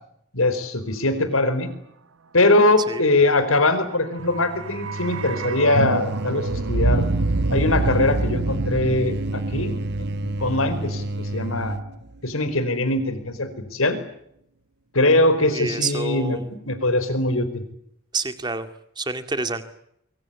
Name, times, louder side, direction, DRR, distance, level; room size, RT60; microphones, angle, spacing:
voice 1, 0.3-1.7 2.3-7.1 7.5-9.8 10.4-11.8 12.2-14.0 14.9-17.6, left 2 dB, 85° left, 11 dB, 4.6 m, -21 dB
sound 1, 4.1-12.2 12.4-12.5, right 2 dB, 80° right, 1.0 m, -27 dB
sound 2, 4.2-11.9, right 1 dB, 50° right, 1.3 m, -31 dB
voice 2, 15.5-16.5 18.1-18.7 19.0-19.6, right 3 dB, 20° right, 9 dB, 2.1 m, -28 dB
25.0 x 24.0 x 8.5 m, 0.74 s
head